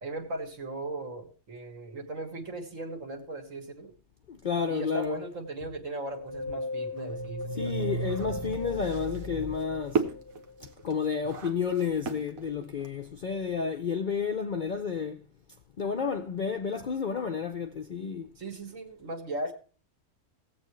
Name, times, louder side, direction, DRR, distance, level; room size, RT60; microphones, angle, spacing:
voice 1, 0.0-3.9 4.7-8.0 18.4-19.5, right 2 dB, 70° right, 2.1 m, -38 dB
voice 2, 4.3-5.2 7.5-10.1 10.8-15.3 15.8-18.3, left 6 dB, 55° left, 0.5 m, -31 dB
sound 1, 6.1-10.7, equal, 20° right, 0.8 m, -35 dB
sound 2, 7.0-13.1, right 5 dB, 90° right, 1.5 m, -36 dB
17.5 x 7.9 x 3.1 m
omnidirectional pair, 1.4 m